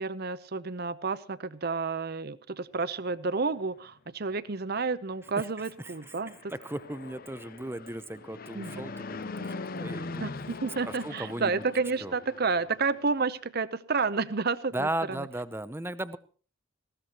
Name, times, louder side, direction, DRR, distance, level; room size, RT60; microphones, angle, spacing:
voice 1, 0.0-6.5 8.5-8.8 10.2-15.3, right 4 dB, 45° right, 15 dB, 0.7 m, -30 dB
voice 2, 5.4-6.1 6.5-10.3 10.8-11.6 12.0-12.1 14.7-16.2, right 1 dB, 10° right, 14 dB, 0.6 m, -36 dB
Fixed-wing aircraft airplane, 5.8-13.2, left 3 dB, 45° left, 0.7 m, -41 dB
19.5 x 15.5 x 2.9 m, 0.39 s
head